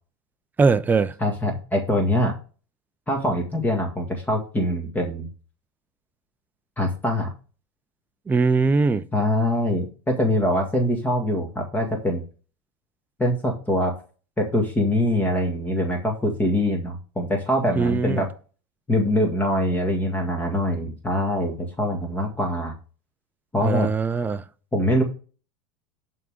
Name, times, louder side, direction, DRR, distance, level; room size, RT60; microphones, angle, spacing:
voice 1, 0.6-1.1 8.3-9.0 17.8-18.2 23.6-24.4, right 4 dB, 10° right, 0.5 m, -21 dB
voice 2, 1.2-2.3 3.1-5.3 6.8-7.3 9.1-12.2 13.2-13.9 14.4-18.3 18.9-22.7 23.5-23.9 24.7-25.0, left 1 dB, 10° left, 1.8 m, -23 dB
10.5 x 3.7 x 6.4 m
supercardioid pair, 120°, 15 cm